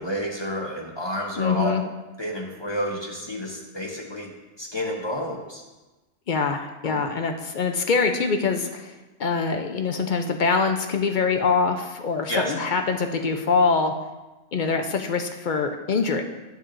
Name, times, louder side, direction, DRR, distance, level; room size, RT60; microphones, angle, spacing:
voice 1, 0.0-1.8 2.2-4.3 4.6-5.6 6.8-7.0 12.3-12.5, equal, 25° left, -1 dB, 0.9 m, -30 dB
voice 2, 1.4-1.8 6.3-8.9 9.2-13.9 14.5-16.2, left 5 dB, 55° left, 5 dB, 0.6 m, -24 dB
9.3 x 8.3 x 2.5 m, 1.1 s
omnidirectional pair, 1.1 m